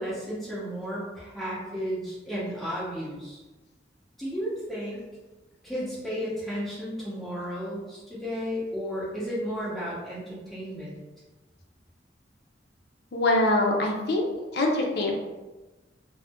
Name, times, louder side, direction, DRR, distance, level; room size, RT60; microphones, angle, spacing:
voice 1, 0.0-3.4 4.2-5.0 5.6-11.0, equal, ahead, -9 dB, 0.9 m, -33 dB
voice 2, 13.1-14.2 14.5-15.1, left 2 dB, 65° left, 1 dB, 0.5 m, -23 dB
2.4 x 2.0 x 3.5 m, 1.2 s
head